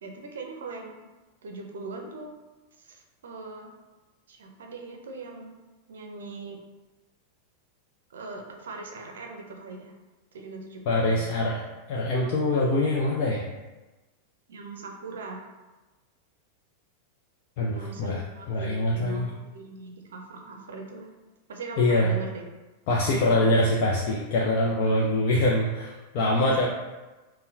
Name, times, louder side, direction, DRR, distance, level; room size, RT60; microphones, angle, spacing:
voice 1, 0.0-1.0 1.4-2.3 2.8-3.7 4.3-5.6 5.9-6.6 8.1-9.9 10.3-11.3 14.5-15.4 17.7-21.1 21.5-22.4 26.4-26.7, right 3 dB, 65° right, 2 dB, 0.5 m, -40 dB
voice 2, 10.9-11.6 11.9-13.4 17.6-18.2 18.5-19.3 21.8-22.1 22.9-26.7, left 1 dB, 45° left, -3 dB, 0.5 m, -24 dB
5.3 x 2.1 x 2.7 m, 1.2 s
figure-of-eight pair, 90°, 0 cm